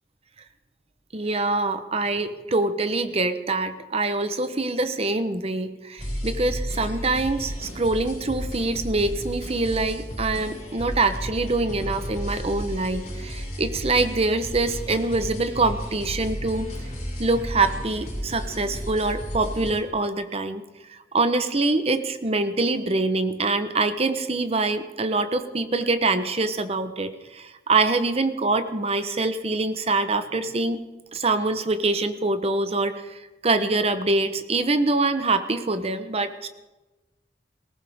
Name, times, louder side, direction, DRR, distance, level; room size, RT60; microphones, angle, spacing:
voice 1, 1.1-16.7 17.2-20.6 20.9-30.8 31.1-36.5, right 3 dB, 35° right, 10 dB, 0.9 m, -24 dB
sound 1, 6.0-19.7, equal, 45° left, 7.2 m, -33 dB
19.5 x 18.0 x 3.6 m, 1.1 s
head